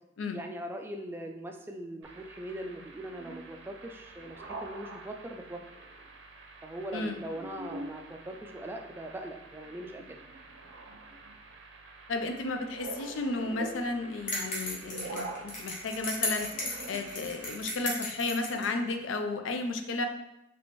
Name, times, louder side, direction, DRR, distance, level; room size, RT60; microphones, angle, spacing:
voice 1, 0.3-5.6 6.6-10.2, right 1 dB, 10° right, 3 dB, 0.3 m, -41 dB
sound 1, 2.0-17.7, right 2 dB, 85° right, 0.6 m, -45 dB
voice 2, 12.1-16.5 16.9-20.1, left 3 dB, 85° left, 6 dB, 0.4 m, -33 dB
sound 2, 14.3-18.7, left 2 dB, 45° left, 1.1 m, -35 dB
4.3 x 3.0 x 2.9 m, 0.91 s
head